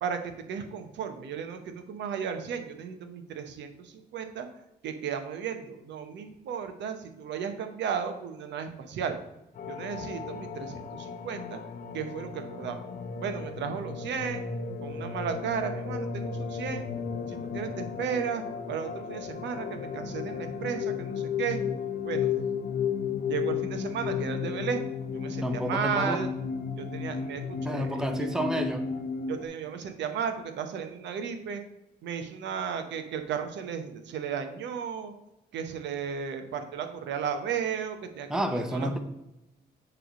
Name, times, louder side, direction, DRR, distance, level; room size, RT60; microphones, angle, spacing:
voice 1, 0.0-4.5 4.8-9.2 9.7-11.6 11.9-12.8 13.2-14.4 14.8-16.9 17.3-21.6 22.0-22.3 23.2-24.8 25.1-26.3 26.7-28.3 29.3-31.6 32.0-35.1 35.5-38.3 38.7-39.0, right 7 dB, 85° right, 7 dB, 0.9 m, -34 dB
sound 1, 9.6-29.5, left 6 dB, 55° left, 0.6 m, -34 dB
voice 2, 25.3-26.2 27.6-28.9 38.3-39.0, right 1 dB, 5° right, 6 dB, 0.6 m, -30 dB
7.7 x 3.3 x 5.0 m, 0.90 s
cardioid pair, 135°, 18 cm